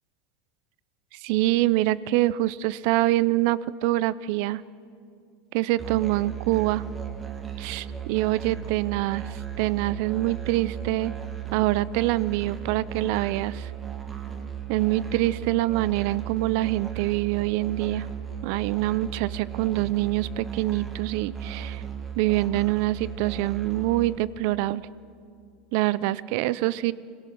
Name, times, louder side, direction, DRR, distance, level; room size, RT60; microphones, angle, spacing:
voice 1, 1.1-4.6 5.5-6.9 7.6-11.1 11.5-13.7 14.7-18.1 18.4-21.8 22.2-24.8 25.7-26.9, right 16 dB, 65° right, 19 dB, 0.5 m, -25 dB
Musical instrument, 5.8-24.2, right 9 dB, 20° right, 1.8 m, -36 dB
26.0 x 17.0 x 6.3 m, 2.4 s
supercardioid pair, 140°, 0 cm